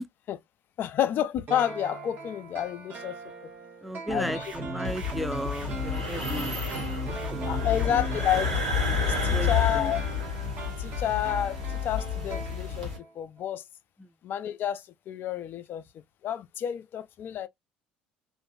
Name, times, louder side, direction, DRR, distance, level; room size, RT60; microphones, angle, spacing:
voice 1, 0.8-3.5 4.1-4.5 7.4-8.6 9.0-10.0 10.8-13.6 14.2-15.8 16.2-17.5, left 10 dB, 55° left, 0.4 m, -30 dB
sound 1, 1.5-13.1 13.4-13.5, right 3 dB, 50° right, 1.1 m, -42 dB
voice 2, 3.8-6.5 7.2-7.7 9.0-9.9 14.0-14.1, equal, ahead, 0.5 m, -35 dB
sound 2, 4.1-8.5, right 1 dB, 25° right, 1.2 m, -37 dB
sound 3, 4.8-13.0, left 5 dB, 90° right, 0.9 m, -30 dB
2.5 x 2.5 x 2.6 m
hypercardioid pair, 60°, 4 cm